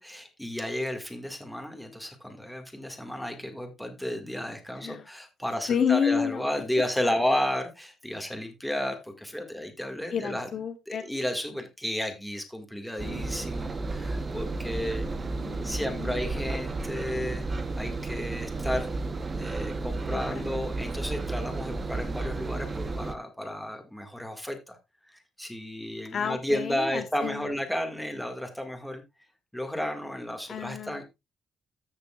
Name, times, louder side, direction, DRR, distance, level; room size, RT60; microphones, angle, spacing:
voice 1, 0.0-10.5 10.9-15.1 15.6-17.4 17.8-18.9 19.4-24.8 25.1-29.0 29.5-31.0, left 1 dB, ahead, 5 dB, 1.9 m, -32 dB
voice 2, 5.7-6.5 7.0-7.1 10.1-11.0 13.0-13.3 15.2-16.1 20.1-20.6 26.1-27.5 30.5-31.0, left 7 dB, 50° left, 7 dB, 1.1 m, -30 dB
Engine, 13.0-23.1, right 3 dB, 25° right, 0.9 m, -32 dB
14.0 x 6.7 x 2.4 m, 0.23 s
cardioid pair, 125°, 0 cm